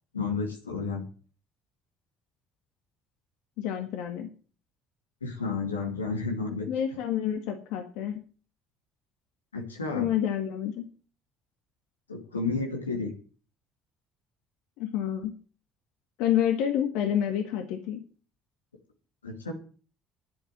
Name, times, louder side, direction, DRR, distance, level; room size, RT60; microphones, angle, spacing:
voice 1, 0.1-1.1 5.2-6.7 9.5-10.1 12.1-13.1 19.2-19.5, left 4 dB, 90° left, 3 dB, 2.4 m, -31 dB
voice 2, 3.6-4.3 6.7-8.2 9.9-10.9 14.8-15.3 16.2-18.0, left 10 dB, 65° left, 6 dB, 1.8 m, -28 dB
10.5 x 8.2 x 9.0 m, 0.40 s
figure-of-eight pair, 55°, 0 cm